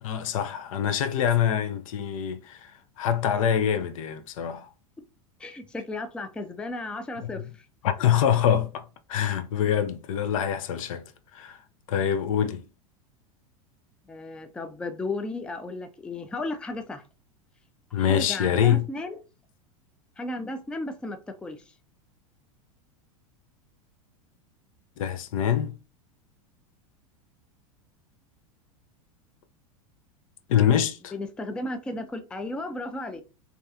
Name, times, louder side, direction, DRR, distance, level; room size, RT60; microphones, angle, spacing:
voice 1, 0.0-4.7 7.2-7.5 7.8-11.0 11.3-11.6 11.9-12.6 17.9-18.9 25.0-25.8 30.5-31.1, left 9 dB, 70° left, 0.4 m, -25 dB
voice 2, 5.4-7.4 14.1-17.0 17.9-19.2 20.2-21.6 31.1-33.2, left 2 dB, 5° left, 0.3 m, -34 dB
2.6 x 2.3 x 2.3 m
hypercardioid pair, 95°, 18 cm